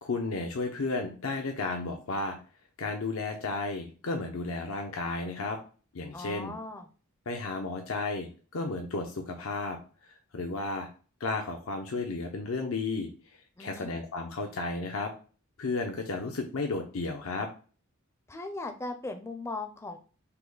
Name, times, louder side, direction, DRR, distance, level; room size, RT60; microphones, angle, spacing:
voice 1, 0.0-2.4 2.8-5.6 5.9-6.5 7.3-9.8 10.1-10.9 11.2-13.1 13.6-15.1 15.6-17.5, left 3 dB, 80° left, 3 dB, 0.7 m, -33 dB
voice 2, 6.1-6.9 13.6-13.9 18.3-20.0, left 2 dB, 15° left, 6 dB, 0.4 m, -38 dB
5.6 x 2.2 x 3.9 m, 0.38 s
head